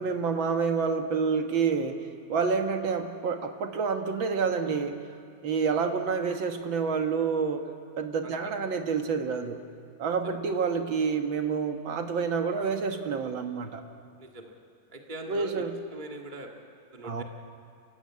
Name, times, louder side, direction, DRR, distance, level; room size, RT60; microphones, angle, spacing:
voice 1, 0.0-5.0 5.4-7.7 8.0-9.7 10.0-13.8 15.3-15.7 17.0-17.2, right 5 dB, 80° right, 5 dB, 2.2 m, -28 dB
voice 2, 14.2-14.5 14.9-15.6 15.9-16.5 16.9-17.2, right 1 dB, 25° right, 2 dB, 1.9 m, -42 dB
29.0 x 15.5 x 8.6 m, 2.5 s
omnidirectional pair, 2.1 m